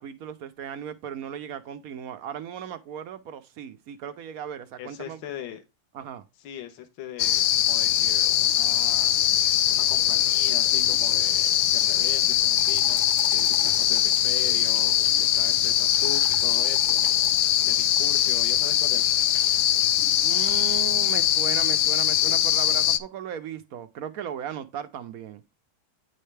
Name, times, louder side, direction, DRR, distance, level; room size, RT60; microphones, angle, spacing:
voice 1, 0.0-5.2 5.9-6.2 20.2-25.4, right 9 dB, 80° right, 0.8 m, -36 dB
voice 2, 4.8-5.6 6.4-9.1 9.7-17.1 17.6-19.1, left 9 dB, 65° left, 1.7 m, -40 dB
sound 1, 7.2-23.0, left 11 dB, 90° left, 0.8 m, -22 dB
sound 2, 12.5-14.2 15.8-17.5, right 5 dB, 35° right, 0.7 m, -43 dB
9.2 x 5.4 x 3.3 m
omnidirectional pair, 2.3 m